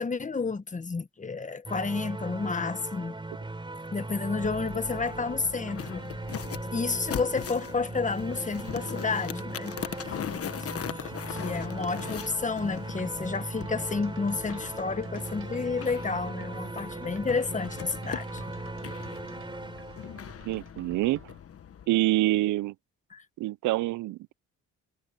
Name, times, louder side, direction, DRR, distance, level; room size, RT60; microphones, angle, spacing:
voice 1, 0.0-3.1 3.9-6.0 6.7-9.8 10.6-18.4 23.1-23.2, left 4 dB, 25° left, 1.5 m, -31 dB
sound 1, 1.6-20.6, right 2 dB, 15° right, 3.6 m, -38 dB
sound 2, 4.4-21.9, left 9 dB, 50° left, 1.3 m, -40 dB
sound 3, 13.5-21.4, right 6 dB, 45° right, 5.3 m, -54 dB
voice 2, 20.5-21.2 21.9-22.7 23.4-24.3, right 17 dB, 80° right, 0.6 m, -26 dB
cardioid pair, 90°, 30 cm